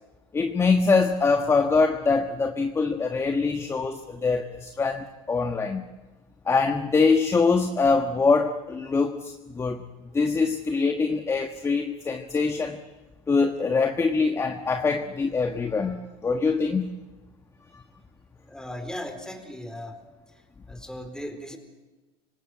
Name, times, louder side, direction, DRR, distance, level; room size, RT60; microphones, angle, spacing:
voice 1, 0.3-5.8 6.4-9.8 10.1-12.8 13.3-16.9, left 4 dB, 20° left, 6 dB, 1.4 m, -24 dB
voice 2, 18.4-20.0 20.3-21.6, left 1 dB, 5° left, 6 dB, 4.2 m, -38 dB
25.5 x 19.0 x 7.8 m, 1.2 s
supercardioid pair, 100°, 13 cm